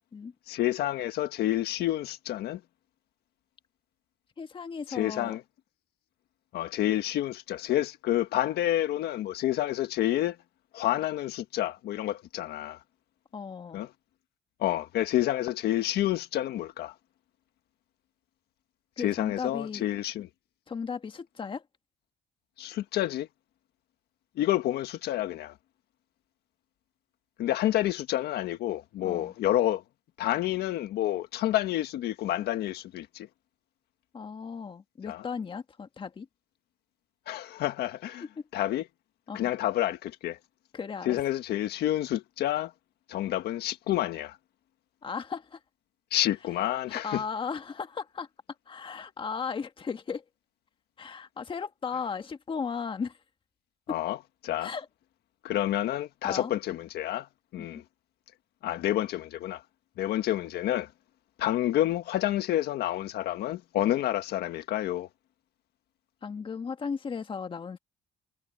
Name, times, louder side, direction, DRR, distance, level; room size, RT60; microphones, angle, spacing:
voice 1, 0.5-2.6 4.9-5.4 6.5-10.4 10.7-12.8 13.7-13.9 14.6-16.9 19.0-20.3 22.6-23.3 24.4-25.5 27.4-29.8 30.2-33.3 35.1-35.2 37.3-38.2 38.5-38.8 39.3-40.4 41.0-42.7 43.1-44.4 46.1-47.2 53.9-54.2 54.4-54.7 55.4-57.3 57.5-57.8 58.6-59.6 60.0-60.9 61.4-65.1, left 13 dB, 75° left, 1.5 m, -29 dB
voice 2, 4.4-5.4 13.3-13.8 19.0-19.9 20.7-21.6 29.0-29.3 34.1-36.3 39.3-39.4 40.7-41.2 45.0-45.6 46.9-48.3 48.7-50.2 51.0-53.1 53.9-54.0 54.6-54.9 56.2-56.5 57.6-57.7 66.2-67.8, left 5 dB, 30° left, 1.7 m, -36 dB
cardioid pair, 110°, 17 cm